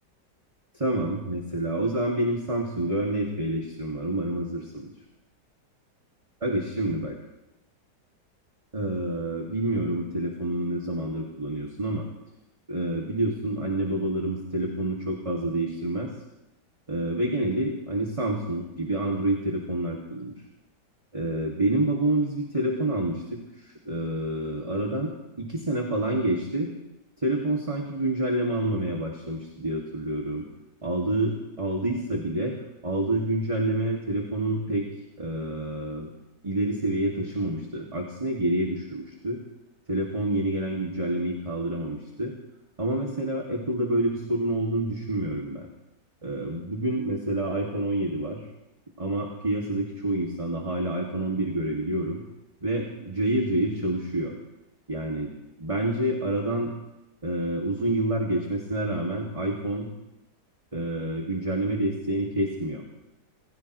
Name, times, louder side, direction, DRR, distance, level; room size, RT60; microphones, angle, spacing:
voice 1, 0.7-4.9 6.4-7.2 8.7-12.1 12.7-16.1 16.9-20.3 21.1-25.1 25.4-26.7 27.2-30.4 30.8-32.6 32.8-34.9 35.2-36.1 36.4-39.4 39.9-42.3 42.8-45.7 46.2-48.4 49.0-52.2 52.6-54.3 54.9-55.3 55.6-56.7 57.2-59.9 60.7-62.8, right 1 dB, 20° right, -1 dB, 2.2 m, -28 dB
29.0 x 16.0 x 3.1 m, 0.95 s
omnidirectional pair, 1.9 m